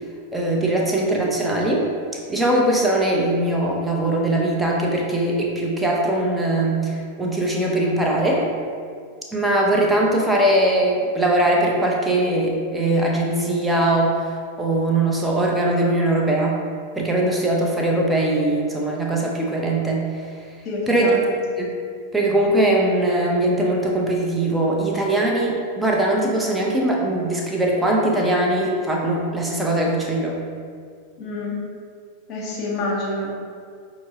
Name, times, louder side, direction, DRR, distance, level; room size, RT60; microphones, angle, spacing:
voice 1, 0.3-1.8 2.3-8.4 9.3-16.6 16.9-20.1 20.9-21.2 21.6-21.7 22.1-30.4, right 1 dB, 5° right, -2 dB, 0.7 m, -21 dB
voice 2, 20.6-21.3 31.2-31.6 32.3-33.3, left 2 dB, 35° left, -4 dB, 1.0 m, -27 dB
5.4 x 2.9 x 2.8 m, 2.1 s
figure-of-eight pair, 90°, 0 cm